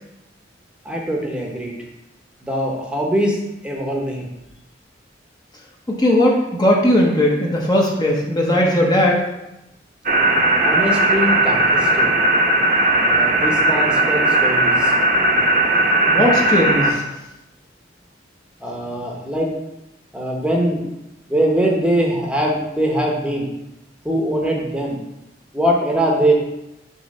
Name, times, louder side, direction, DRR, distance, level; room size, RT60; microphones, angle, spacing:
voice 1, 0.8-1.8 2.4-4.3 10.6-12.1 12.9-14.9 18.6-19.5 20.1-20.8 21.3-23.5 24.0-25.0 25.5-26.3, right 1 dB, 5° right, -1 dB, 0.9 m, -22 dB
voice 2, 5.9-9.2 16.1-17.0, left 1 dB, 20° left, -2 dB, 0.8 m, -17 dB
sound 1, 10.1-16.9, right 1 dB, 50° right, 0.8 m, -17 dB
6.3 x 3.0 x 5.4 m, 0.91 s
head